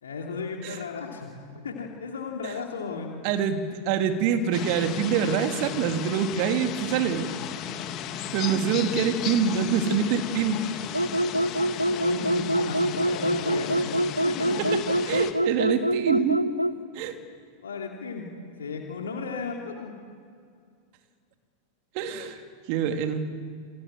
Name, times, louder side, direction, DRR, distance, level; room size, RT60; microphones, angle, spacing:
voice 1, 0.0-3.1 11.9-14.7 17.6-18.3 18.6-19.9, left 4 dB, 70° left, 1 dB, 2.9 m, -34 dB
voice 2, 3.2-3.6 3.8-7.3 8.3-10.6 14.7-14.8 15.1-16.4 16.9-17.1 21.9-22.4 22.7-23.2, right 7 dB, 45° right, 6 dB, 2.9 m, -25 dB
sound 1, 4.5-15.3, left 10 dB, 35° left, 2.3 m, -35 dB
sound 2, 10.9-16.8, right 1 dB, 90° right, 0.8 m, -25 dB
29.0 x 24.0 x 7.8 m, 2.2 s
figure-of-eight pair, 90°, 0 cm